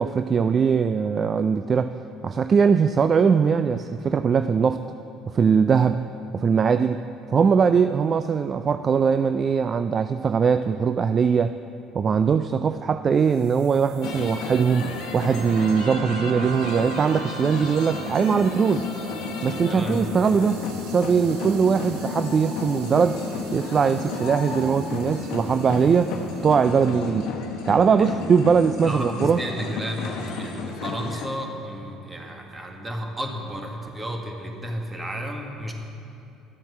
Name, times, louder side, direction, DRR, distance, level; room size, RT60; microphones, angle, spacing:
voice 1, 0.0-1.9 2.2-4.8 5.3-6.0 6.3-7.0 7.3-11.5 11.9-14.9 15.1-18.9 19.4-23.2 23.5-26.1 26.4-27.3 27.7-29.4, right 6 dB, 40° right, 11 dB, 0.3 m, -21 dB
sound 1, 13.3-26.6, right 5 dB, 70° right, 0.8 m, -41 dB
sound 2, 14.0-31.3, left 4 dB, 65° left, 1.1 m, -32 dB
voice 2, 19.7-20.1 26.6-26.8 28.0-28.1 28.9-35.7, equal, 20° right, 2 dB, 1.8 m, -33 dB
11.0 x 7.6 x 7.1 m, 2.7 s
hypercardioid pair, 65°, 0 cm